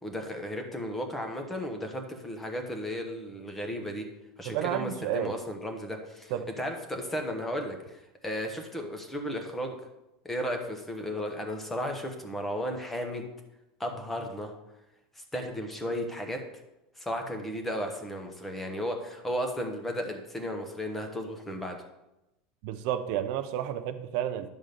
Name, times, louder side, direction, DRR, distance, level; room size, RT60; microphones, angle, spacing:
voice 1, 0.0-4.0 4.4-9.8 10.2-13.3 13.8-14.5 15.1-16.4 17.0-21.8, equal, 10° left, 4 dB, 1.0 m, -34 dB
voice 2, 4.5-5.3 6.3-6.5 22.6-24.5, right 11 dB, 60° right, 9 dB, 0.6 m, -31 dB
10.5 x 3.7 x 6.7 m, 0.93 s
supercardioid pair, 160°, 2 cm